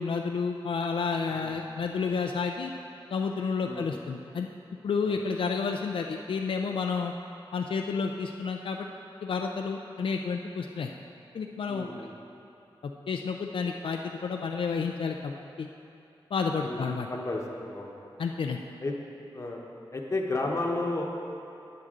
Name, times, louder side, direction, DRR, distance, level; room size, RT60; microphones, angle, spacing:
voice 1, 0.0-2.7 3.1-4.5 4.8-7.1 7.5-8.9 9.2-10.9 11.3-11.9 12.8-15.7 16.3-17.1 18.2-18.6, left 5 dB, 75° left, 3 dB, 0.4 m, -30 dB
voice 2, 11.7-12.1 16.6-17.9 18.8-18.9 19.3-19.6 19.9-21.1, left 2 dB, 35° left, 0 dB, 0.9 m, -32 dB
9.4 x 7.8 x 3.7 m, 2.8 s
wide cardioid pair, 130°, 9 cm